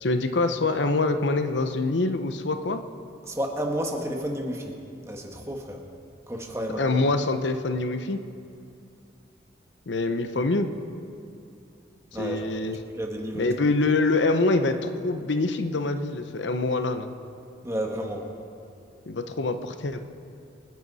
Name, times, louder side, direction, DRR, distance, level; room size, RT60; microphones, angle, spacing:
voice 1, 0.0-2.8 6.8-8.2 9.9-10.7 12.1-12.8 13.3-17.1 19.1-20.0, left 3 dB, 75° left, 8 dB, 0.8 m, -25 dB
voice 2, 3.3-4.7 5.0-5.8 6.3-7.0 12.1-12.4 13.0-13.5 17.6-18.3, equal, 15° right, 1 dB, 1.4 m, -31 dB
25.5 x 10.5 x 4.2 m, 2.5 s
head